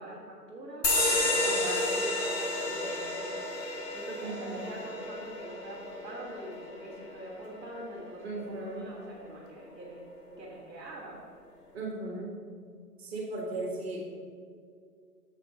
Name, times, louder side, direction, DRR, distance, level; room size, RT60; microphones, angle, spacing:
voice 1, 0.0-10.0 10.4-11.2, right 1 dB, 10° right, -10 dB, 1.3 m, -44 dB
sound 1, 0.8-7.9, left 2 dB, 80° left, 1.8 m, -31 dB
voice 2, 1.4-1.8 4.2-4.7 7.7-7.8 8.2-8.9 11.7-12.3 13.0-14.0, right 2 dB, 40° right, -1 dB, 1.5 m, -37 dB
7.4 x 7.0 x 3.9 m, 2.2 s
figure-of-eight pair, 145°, 49 cm